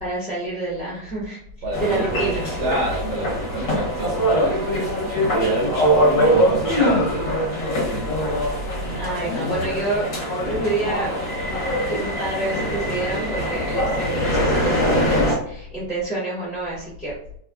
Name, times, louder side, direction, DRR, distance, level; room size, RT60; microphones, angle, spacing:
voice 1, 0.0-1.4 1.8-2.5 9.0-10.1 10.4-11.1 11.9-17.1, right 2 dB, 5° left, 0.7 m, -28 dB
voice 2, 1.6-2.1 2.6-5.0 5.4-7.2 7.7-8.3 11.4-11.7, right 1 dB, 85° right, 1.3 m, -30 dB
sound 1, 1.7-15.3, equal, 55° left, 1.2 m, -22 dB
3.2 x 2.2 x 2.3 m
omnidirectional pair, 1.9 m